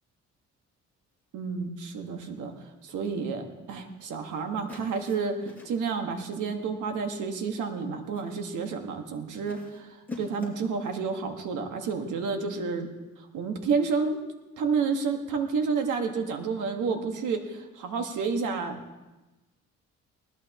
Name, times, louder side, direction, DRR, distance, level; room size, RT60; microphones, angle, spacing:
voice 1, 1.3-2.5 2.8-12.9 13.3-14.2 14.6-18.8, right 5 dB, 80° right, 4 dB, 1.7 m, -30 dB
sound 1, 2.9-3.2 4.7-6.0 7.0-7.4 7.8-8.4 9.4-10.8, left 3 dB, 5° left, 5.3 m, -45 dB
19.5 x 14.0 x 3.0 m, 1.1 s
cardioid pair, 90°, 30 cm